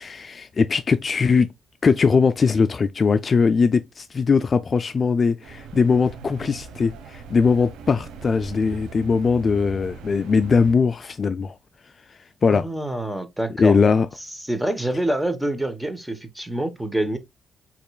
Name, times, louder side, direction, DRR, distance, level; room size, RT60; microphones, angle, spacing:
voice 1, 0.0-1.5 1.8-11.5 12.1-12.7 13.6-14.1, left 5 dB, 40° left, 0.3 m, -20 dB
sound 1, 5.4-10.7, right 5 dB, 85° right, 1.1 m, -40 dB
voice 2, 12.5-13.8 14.4-17.2, right 1 dB, 5° right, 1.0 m, -26 dB
6.5 x 3.1 x 2.3 m
cardioid pair, 90°, 0 cm